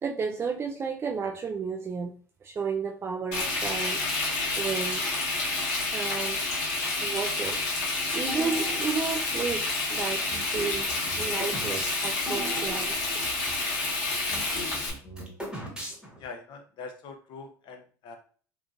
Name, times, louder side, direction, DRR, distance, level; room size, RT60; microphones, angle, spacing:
voice 1, 0.0-2.2 2.4-4.0 4.6-5.0 5.9-6.4 7.0-7.6 8.1-13.0, right 5 dB, 25° right, 2 dB, 0.3 m, -32 dB
Frying (food), 3.3-14.9, left 3 dB, 70° left, 1.0 m, -29 dB
sound 1, 8.3-9.7 10.3-13.7 14.0-14.1 14.3-16.3, equal, 10° right, 1.0 m, -39 dB
voice 2, 16.2-18.2, left 4 dB, 50° left, 5 dB, 0.6 m, -43 dB
2.9 x 2.4 x 2.4 m, 0.43 s
hypercardioid pair, 80°, 10 cm